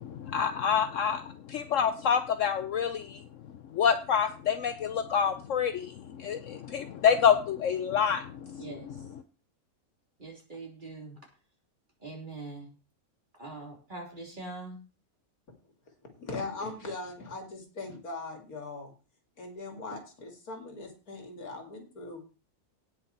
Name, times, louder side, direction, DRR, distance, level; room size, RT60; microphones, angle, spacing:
voice 1, 0.0-3.2 3.7-9.1, left 7 dB, 65° left, 9 dB, 1.0 m, -27 dB
voice 2, 8.6-9.0 10.2-11.2 12.0-12.7 13.4-14.8, right 3 dB, 35° right, 0 dB, 3.5 m, -42 dB
voice 3, 16.1-18.9 19.4-22.2, left 3 dB, 80° left, 4 dB, 2.9 m, -40 dB
17.5 x 6.2 x 4.3 m, 0.34 s
omnidirectional pair, 1.5 m